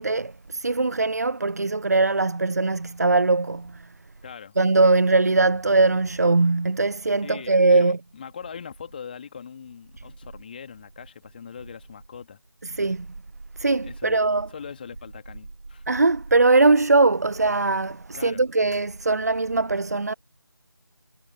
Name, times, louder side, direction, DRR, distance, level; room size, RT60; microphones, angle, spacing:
voice 1, 0.0-3.8 4.6-8.0 12.6-13.1 13.6-14.5 15.9-20.1, right 3 dB, 40° right, 0.4 m, -21 dB
voice 2, 4.2-4.6 7.2-12.4 13.8-14.2 14.5-15.8 18.1-18.4, left 7 dB, 20° left, 2.7 m, -41 dB
figure-of-eight pair, 165°, 13 cm